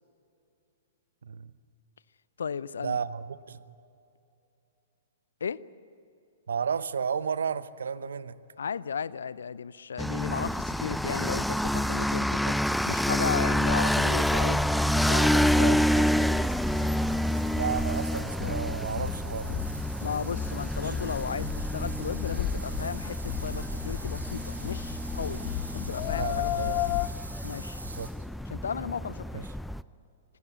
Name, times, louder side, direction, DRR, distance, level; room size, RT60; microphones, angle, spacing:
voice 1, 1.2-1.5 2.8-3.7 6.5-8.4 15.6-15.8 17.5-19.6 20.8-20.9 21.8-22.0 26.2-26.9 27.8-28.1 29.3-29.5, right 6 dB, 70° right, 16 dB, 0.9 m, -33 dB
voice 2, 2.4-3.0 5.4-5.6 8.6-12.6 12.9-14.6 14.9-16.3 20.0-25.4 25.7-26.6 27.4-27.8 28.5-29.5, left 6 dB, 70° left, 20 dB, 0.6 m, -35 dB
sound 1, 10.0-29.8, equal, ahead, 0.5 m, -28 dB
sound 2, 15.9-28.1, right 2 dB, 90° right, 2.9 m, -45 dB
sound 3, 18.1-27.1, left 15 dB, 40° left, 0.9 m, -35 dB
25.0 x 19.0 x 8.2 m, 2.8 s
figure-of-eight pair, 110°, 0 cm